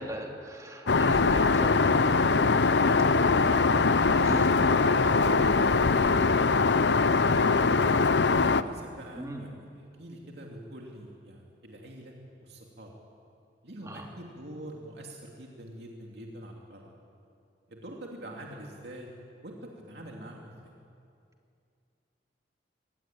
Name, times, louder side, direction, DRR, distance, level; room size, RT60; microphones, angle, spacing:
voice 1, 0.0-1.9 4.2-4.5 9.2-9.4 13.9-14.0, equal, 20° right, 1 dB, 2.6 m, -38 dB
Aircraft, 0.9-8.6, left 4 dB, 70° left, 0.7 m, -22 dB
voice 2, 7.3-12.1 12.4-12.9 13.6-16.9 17.7-19.1 19.4-20.7, right 1 dB, 65° right, -1 dB, 2.7 m, -45 dB
24.0 x 20.0 x 9.1 m, 2.5 s
head